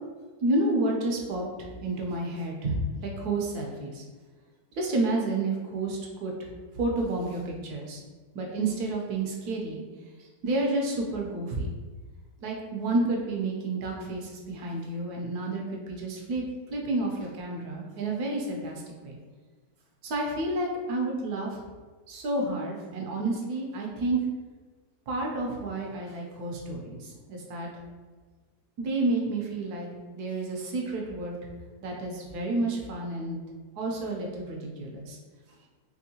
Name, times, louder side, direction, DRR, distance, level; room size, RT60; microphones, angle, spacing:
voice 1, 0.4-4.0 4.7-6.3 6.7-8.0 8.3-9.8 10.2-11.7 12.4-19.2 20.0-21.6 22.1-24.2 25.1-27.7 28.8-29.9 30.1-31.4 31.8-33.4 33.8-35.2, right 2 dB, 70° right, 0 dB, 1.1 m, -30 dB
3.5 x 3.1 x 2.7 m, 1.4 s
omnidirectional pair, 1.8 m